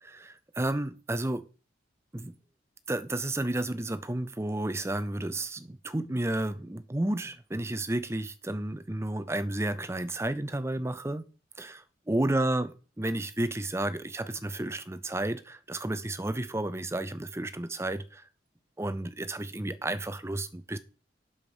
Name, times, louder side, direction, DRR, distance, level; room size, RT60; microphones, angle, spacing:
voice 1, 0.0-1.4 2.1-2.3 2.9-11.3 11.6-18.2 18.8-20.8, right 1 dB, 15° right, 0.6 m, -32 dB
7.9 x 7.1 x 5.2 m
head